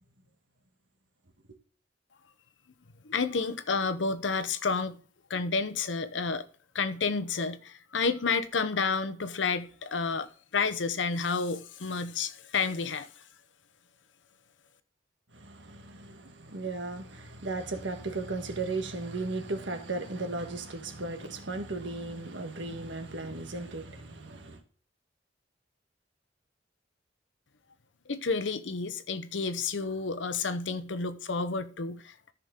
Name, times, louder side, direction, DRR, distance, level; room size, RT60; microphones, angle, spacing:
voice 1, 3.0-5.0 5.3-6.5 6.7-13.1 28.1-32.3, left 4 dB, 90° left, 0.8 m, -30 dB
voice 2, 15.3-24.6, right 3 dB, 85° right, 1.5 m, -36 dB
13.5 x 5.9 x 3.7 m
head